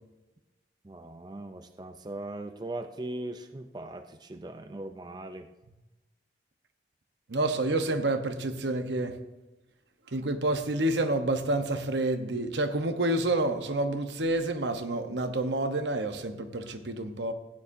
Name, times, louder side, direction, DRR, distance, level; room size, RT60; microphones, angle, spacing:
voice 1, 0.8-5.5, right 2 dB, 25° right, 8 dB, 0.4 m, -39 dB
voice 2, 7.3-9.2 10.1-17.3, right 2 dB, 85° right, 8 dB, 1.0 m, -28 dB
16.0 x 9.9 x 2.7 m, 1.1 s
head